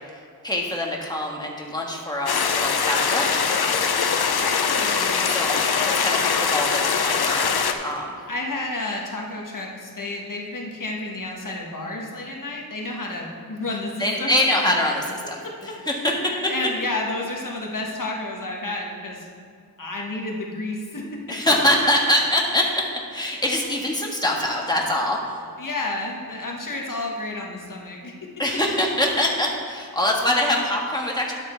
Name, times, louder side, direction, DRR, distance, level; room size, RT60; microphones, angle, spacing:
voice 1, 0.4-3.9 5.3-5.6 6.0-7.5 7.8-8.2 14.0-16.1 21.3-22.8 23.1-25.4 28.4-31.3, left 1 dB, 10° left, -2 dB, 1.5 m, -24 dB
sound 1, 2.3-7.7, left 6 dB, 85° left, 0.7 m, -22 dB
voice 2, 4.2-5.1 8.3-14.4 15.4-15.7 16.1-19.3 19.8-21.0 21.4-21.5 25.6-28.1, left 2 dB, 55° left, -1 dB, 1.4 m, -31 dB
10.5 x 7.4 x 4.5 m, 2.2 s
wide cardioid pair, 90°, 37 cm